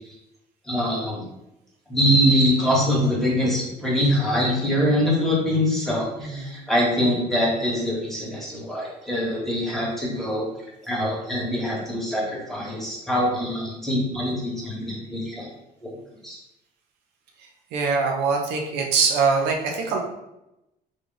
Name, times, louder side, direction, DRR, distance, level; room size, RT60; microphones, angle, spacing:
voice 1, 0.7-1.2 1.9-10.5 10.9-15.5 16.2-16.4, equal, ahead, -4 dB, 1.3 m, -23 dB
voice 2, 6.2-6.6 17.7-20.0, right 5 dB, 85° right, 2 dB, 0.6 m, -23 dB
3.3 x 2.4 x 3.8 m, 0.89 s
cardioid pair, 110°, 17 cm